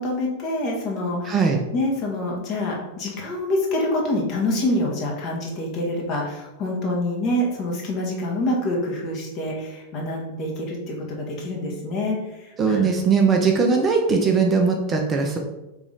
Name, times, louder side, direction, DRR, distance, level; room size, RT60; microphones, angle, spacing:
voice 1, 0.0-13.0, left 1 dB, 35° left, -2 dB, 1.2 m, -26 dB
voice 2, 1.3-1.6 12.6-15.4, right 5 dB, 25° right, 2 dB, 0.5 m, -20 dB
3.9 x 3.0 x 3.8 m, 0.98 s
figure-of-eight pair, 90°, 0 cm